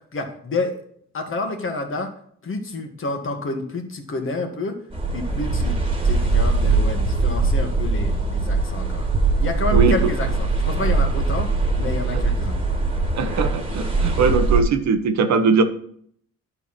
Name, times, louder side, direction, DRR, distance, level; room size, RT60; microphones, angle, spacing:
voice 1, 0.1-0.7 1.1-2.1 2.4-4.8 5.1-5.8 6.0-9.1 9.4-11.5 11.8-12.6 13.9-14.1, left 3 dB, 45° left, 4 dB, 1.7 m, -29 dB
sound 1, 4.9-14.6, right 3 dB, 20° right, 1.8 m, -21 dB
voice 2, 9.7-10.1 12.1-12.2 13.2-15.6, right 5 dB, 65° right, 9 dB, 1.1 m, -20 dB
10.5 x 4.8 x 4.3 m, 0.63 s
cardioid pair, 90°, 30 cm